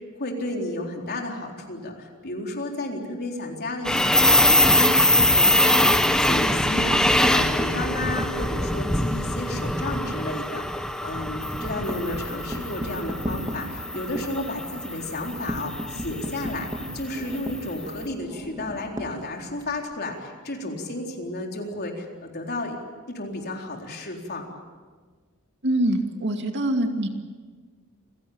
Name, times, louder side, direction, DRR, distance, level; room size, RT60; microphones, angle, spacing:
voice 1, 0.2-5.9 6.2-16.7 16.9-22.8 23.1-24.4, left 2 dB, 50° left, 1 dB, 4.0 m, -32 dB
sound 1, 3.8-17.9, left 1 dB, 5° left, 1.2 m, -23 dB
sound 2, 6.6-9.6 10.0-10.2 10.5-10.6 10.9-19.8, equal, 20° right, 2.9 m, -34 dB
voice 2, 25.6-27.1, right 1 dB, 55° right, 4 dB, 2.5 m, -24 dB
28.5 x 16.5 x 8.8 m, 1.5 s
head